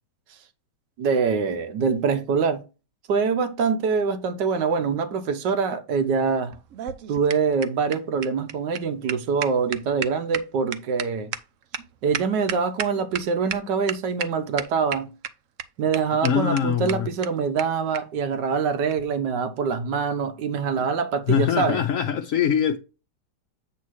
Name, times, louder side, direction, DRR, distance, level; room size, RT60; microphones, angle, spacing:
voice 1, 1.0-2.6 3.1-6.5 7.1-11.3 12.0-15.1 15.8-21.8, right 5 dB, 85° right, 1.6 m, -24 dB
sound 1, 6.5-13.2 13.5-13.6 13.9-14.3 14.6-15.3 15.6-15.7 15.9-16.0 16.2-16.3 16.6-16.7 16.9-17.0 17.2-17.3 17.6-17.7 17.9-18.0 18.9-19.0, right 9 dB, 60° right, 0.8 m, -31 dB
voice 2, 16.2-17.1 21.3-22.8, left 8 dB, 60° left, 0.9 m, -22 dB
8.5 x 2.8 x 6.2 m
omnidirectional pair, 1.8 m